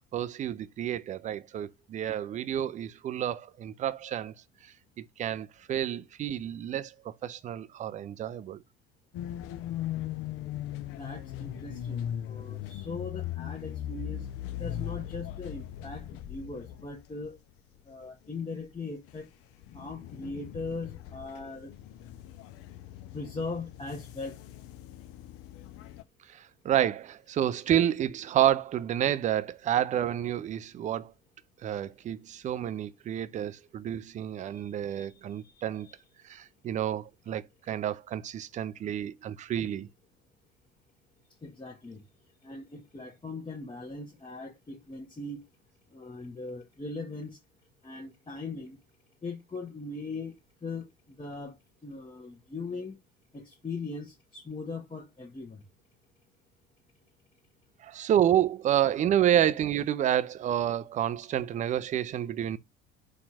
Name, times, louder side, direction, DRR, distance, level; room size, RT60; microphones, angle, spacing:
voice 1, 0.1-4.3 5.0-8.6 26.3-31.1 31.6-35.9 36.2-39.9 57.8-62.6, right 11 dB, 20° right, 0.3 m, -29 dB
sound 1, 9.1-17.4 17.8-17.9 18.6-19.2 19.5-26.0, left 11 dB, 40° left, 0.5 m, -39 dB
voice 2, 10.9-14.3 14.6-17.4 17.8-19.3 19.7-21.7 23.1-24.4 34.4-36.0 41.4-42.0 42.4-45.4 45.9-47.4 47.8-48.8 49.2-50.4 50.6-53.0 53.3-55.6, left 3 dB, 15° left, 1.0 m, -40 dB
4.2 x 2.4 x 4.2 m
figure-of-eight pair, 65°, 37 cm